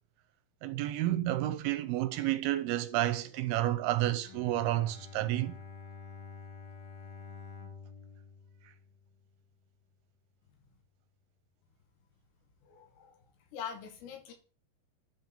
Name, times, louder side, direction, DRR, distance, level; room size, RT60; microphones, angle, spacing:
voice 1, 0.6-5.5, right 14 dB, 80° right, 2.5 m, -30 dB
Bowed string instrument, 4.2-9.5, left 5 dB, 60° left, 2.0 m, -49 dB
voice 2, 12.6-13.2 13.5-14.3, left 7 dB, 80° left, 3.7 m, -43 dB
11.0 x 4.5 x 5.3 m
omnidirectional pair, 4.7 m